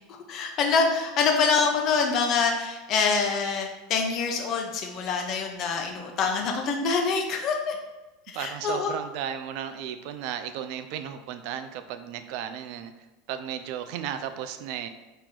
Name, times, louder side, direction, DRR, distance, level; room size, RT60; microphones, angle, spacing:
voice 1, 0.3-7.8 8.3-8.9, left 5 dB, 50° left, 2 dB, 0.8 m, -25 dB
voice 2, 8.3-12.9 13.3-14.9, right 9 dB, 65° right, 9 dB, 0.4 m, -34 dB
4.4 x 3.0 x 3.7 m, 1.1 s
hypercardioid pair, 100°, 0 cm